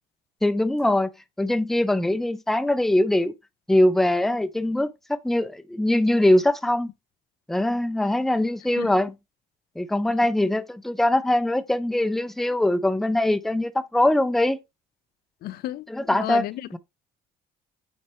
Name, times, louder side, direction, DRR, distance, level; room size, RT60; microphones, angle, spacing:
voice 1, 0.4-1.1 1.4-3.3 3.7-6.9 7.5-9.1 9.8-14.6 15.9-16.4 16.7-16.8, left 1 dB, ahead, 0.5 m, -22 dB
voice 2, 15.4-16.6, left 14 dB, 65° left, 0.4 m, -32 dB
8.4 x 4.2 x 3.0 m
cardioid pair, 110°, 17 cm